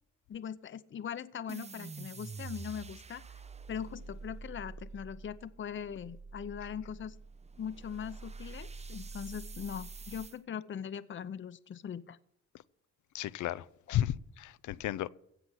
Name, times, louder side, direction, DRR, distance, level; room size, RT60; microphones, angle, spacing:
voice 1, 0.3-3.3 3.7-7.1 7.6-12.2 13.9-14.0, left 8 dB, 40° left, 0.8 m, -41 dB
sound 1, 1.5-10.4, right 4 dB, 20° right, 0.7 m, -46 dB
voice 2, 13.1-15.1, left 12 dB, 75° left, 0.6 m, -34 dB
16.0 x 6.0 x 8.1 m
cardioid pair, 90°, 30 cm